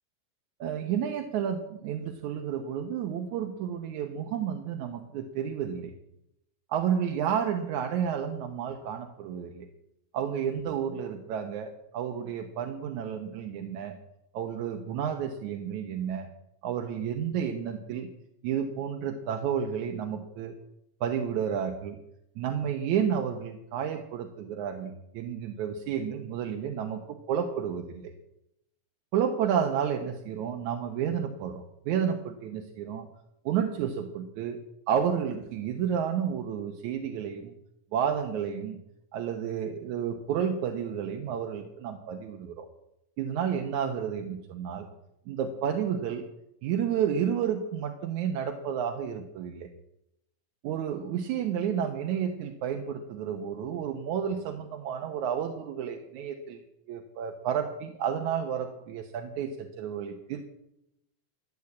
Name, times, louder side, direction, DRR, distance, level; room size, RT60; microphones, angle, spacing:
voice 1, 0.6-5.9 6.7-9.7 10.1-14.0 14.3-16.3 16.6-18.1 18.4-20.5 21.0-22.0 22.4-28.1 29.1-33.1 33.5-34.6 34.9-37.5 37.9-38.8 39.1-42.7 43.2-44.9 45.3-46.2 46.6-49.7 50.6-56.6 56.9-60.4, right 8 dB, 70° right, 4 dB, 2.3 m, -31 dB
13.5 x 8.2 x 8.3 m, 0.82 s
omnidirectional pair, 3.7 m